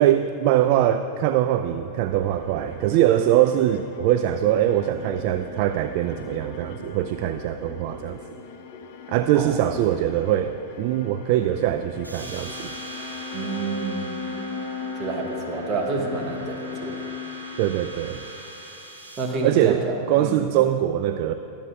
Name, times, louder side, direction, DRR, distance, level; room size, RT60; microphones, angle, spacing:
voice 1, 0.0-8.2 9.1-12.7 17.6-18.2 19.4-21.3, right 12 dB, 45° right, 9 dB, 0.3 m, -22 dB
sound 1, 1.9-18.3, left 5 dB, 45° left, 0.7 m, -39 dB
sound 2, 12.0-19.2, right 1 dB, 85° right, 1.8 m, -40 dB
voice 2, 13.3-14.2 15.0-17.0 19.2-20.5, right 3 dB, 30° right, 1 dB, 1.4 m, -29 dB
22.5 x 8.5 x 2.3 m, 2.8 s
figure-of-eight pair, 90°, 0 cm